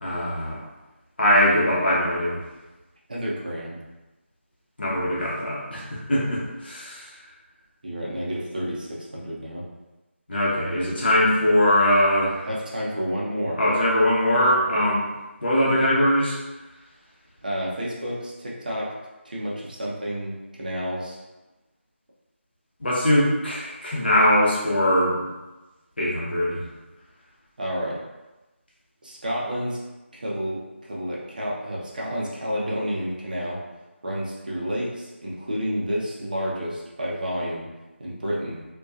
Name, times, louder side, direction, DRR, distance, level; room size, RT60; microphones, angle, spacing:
voice 1, 0.0-0.6 1.2-2.4 4.8-7.0 10.3-12.5 13.6-15.1 15.4-16.4 22.8-25.2 26.0-26.7, left 1 dB, 55° left, -6 dB, 0.8 m, -21 dB
voice 2, 3.1-3.8 7.8-9.6 12.4-13.6 17.4-18.9 19.2-21.2 27.6-28.0 29.0-29.8 30.1-33.6 34.0-37.7 38.0-38.6, equal, 40° right, -5 dB, 0.5 m, -30 dB
2.6 x 2.2 x 2.3 m, 1.1 s
figure-of-eight pair, 170°, 7 cm